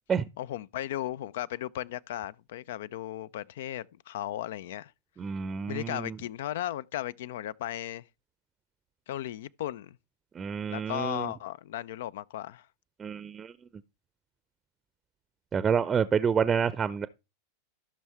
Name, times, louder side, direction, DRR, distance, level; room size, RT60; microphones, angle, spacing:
voice 1, 0.4-4.9 5.7-8.0 9.1-10.0 10.7-12.7, left 12 dB, 55° left, 0.5 m, -36 dB
voice 2, 5.2-6.2 10.3-11.3 13.0-13.5 15.5-17.1, right 7 dB, 20° right, 0.7 m, -28 dB
15.5 x 6.3 x 4.3 m
figure-of-eight pair, 90°, 0 cm